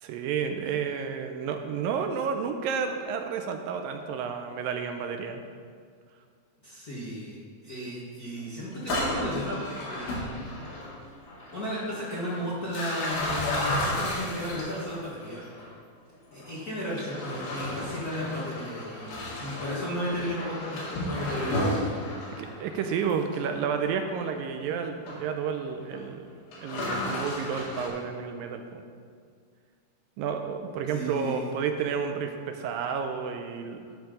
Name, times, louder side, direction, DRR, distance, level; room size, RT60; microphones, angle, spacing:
voice 1, 0.0-5.4 22.4-26.3 26.6-28.8 30.2-33.9, right 6 dB, 80° right, 6 dB, 2.3 m, -31 dB
voice 2, 6.6-7.4 7.6-10.3 11.5-15.4 16.3-22.4 30.9-31.4, equal, 50° left, -8 dB, 1.1 m, -34 dB
sound 1, 8.7-11.0 11.3-11.6 12.1-15.7 16.3-16.5 17.0-23.6 24.1-24.3 25.1-25.2 25.7-26.0 26.5-27.9, left 1 dB, 85° left, 3.9 m, -33 dB
12.0 x 5.8 x 5.0 m, 2.1 s
omnidirectional pair, 4.2 m